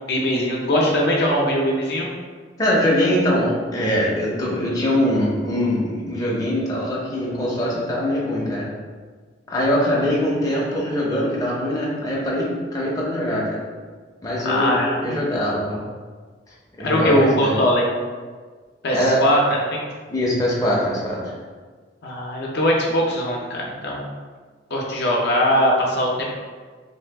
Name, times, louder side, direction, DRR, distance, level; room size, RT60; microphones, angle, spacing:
voice 1, 0.1-2.1 14.4-15.2 16.8-17.9 18.8-19.8 22.0-24.1 24.7-26.3, equal, 65° left, -2 dB, 0.5 m, -21 dB
voice 2, 2.6-8.7 9.5-13.6 14.2-15.8 16.8-17.6 18.9-19.2 20.1-21.2, equal, 20° left, -5 dB, 0.5 m, -22 dB
2.7 x 2.3 x 3.3 m, 1.5 s
head